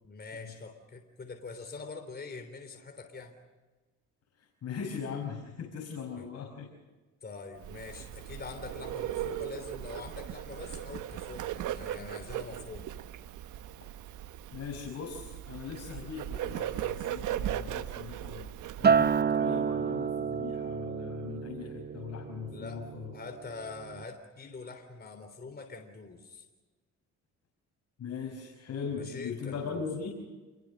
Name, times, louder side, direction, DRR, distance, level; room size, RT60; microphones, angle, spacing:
voice 1, 0.0-3.4 7.2-12.9 22.5-22.8 23.1-26.5 28.9-29.9, left 4 dB, 30° left, 5 dB, 3.6 m, -44 dB
voice 2, 4.4-6.7 14.5-18.5 18.8-23.1 28.0-30.1, left 6 dB, 55° left, 1 dB, 5.7 m, -40 dB
Bird, 7.6-19.2, right 11 dB, 80° right, 1.3 m, -38 dB
Acoustic guitar, 18.8-23.3 23.6-24.0, right 6 dB, 35° right, 0.7 m, -29 dB
28.5 x 22.0 x 6.6 m, 1.2 s
cardioid pair, 90°, 30 cm